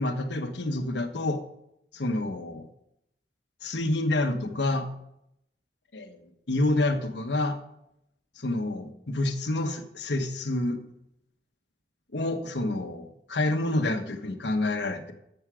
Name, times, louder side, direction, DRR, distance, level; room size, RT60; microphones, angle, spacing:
voice 1, 0.0-1.4 1.9-2.6 3.6-4.9 5.9-6.2 6.5-7.6 8.4-10.8 12.1-15.1, left 2 dB, 90° left, 6 dB, 1.2 m, -28 dB
12.5 x 7.3 x 5.0 m, 0.78 s
head